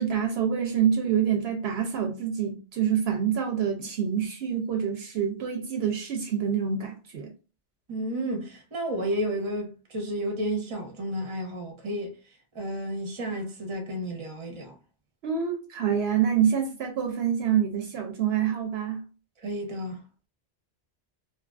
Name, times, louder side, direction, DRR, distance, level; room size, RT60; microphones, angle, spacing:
voice 1, 0.0-7.3 15.2-19.0, right 8 dB, 70° right, 0.8 m, -26 dB
voice 2, 7.9-12.1 12.5-14.7 19.4-20.0, right 1 dB, 30° right, 0.7 m, -31 dB
2.7 x 2.4 x 2.3 m
omnidirectional pair, 1.2 m